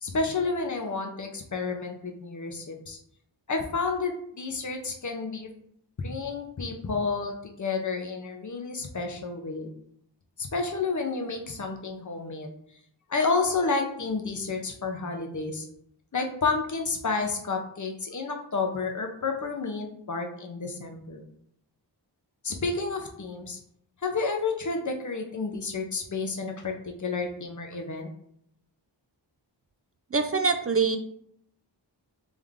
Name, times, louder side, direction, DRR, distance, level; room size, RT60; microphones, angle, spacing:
voice 1, 0.0-3.0 3.5-5.5 6.0-9.7 10.4-12.5 13.1-15.7 16.1-21.2 22.4-23.6 24.0-28.1, left 4 dB, 45° left, 3 dB, 0.8 m, -30 dB
voice 2, 30.1-31.0, right 4 dB, 35° right, 7 dB, 0.4 m, -24 dB
3.6 x 3.4 x 3.6 m, 0.70 s
wide cardioid pair, 70°, 43 cm